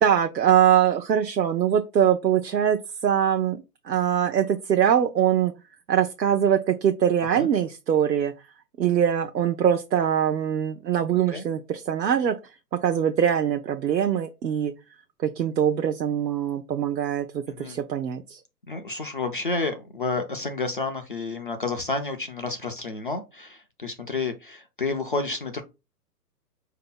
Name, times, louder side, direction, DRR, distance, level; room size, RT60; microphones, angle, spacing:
voice 1, 0.0-3.6 3.8-5.5 5.9-8.3 8.8-12.4 12.8-14.7 15.2-18.4, right 9 dB, 85° right, 0.7 m, -22 dB
voice 2, 18.7-25.6, left 3 dB, 35° left, 0.4 m, -30 dB
5.0 x 2.8 x 3.7 m
figure-of-eight pair, 135°, 49 cm